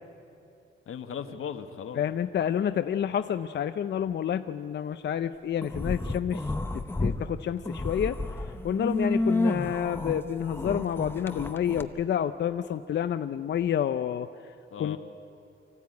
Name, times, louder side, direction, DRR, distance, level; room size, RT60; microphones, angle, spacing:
voice 1, 0.9-2.0 14.7-15.0, left 7 dB, 90° left, 7 dB, 1.4 m, -37 dB
voice 2, 2.0-6.5 7.0-8.2 8.6-14.5 14.8-15.0, left 9 dB, 60° left, 10 dB, 0.5 m, -29 dB
sound 1, 5.6-7.2 7.6-11.8, left 2 dB, 10° left, 0.8 m, -30 dB
25.0 x 15.0 x 9.5 m, 2.6 s
wide cardioid pair, 170°, 21 cm